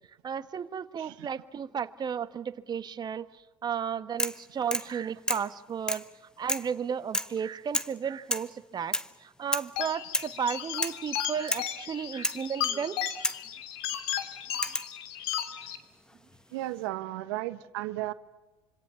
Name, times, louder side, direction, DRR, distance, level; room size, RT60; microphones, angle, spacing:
voice 1, 0.2-3.3 3.6-6.0 6.4-13.0, right 7 dB, 30° right, 12 dB, 1.4 m, -34 dB
sound 1, 4.2-4.4 4.7-4.9 5.3-5.5 5.9-6.1 6.5-6.7 7.1-7.4 7.7-8.0 8.3-8.5 8.9-9.1 9.5-9.7 10.1-10.4 10.8-11.0 11.5-11.7 12.2-12.4 13.2-13.5 14.6-14.9 16.1-16.6, left 1 dB, 5° left, 1.3 m, -31 dB
sound 2, 9.8-15.8, left 11 dB, 70° left, 2.5 m, -35 dB
voice 2, 16.5-18.1, right 16 dB, 70° right, 12 dB, 1.3 m, -34 dB
26.0 x 25.5 x 7.0 m, 1.2 s
hypercardioid pair, 75°, 13 cm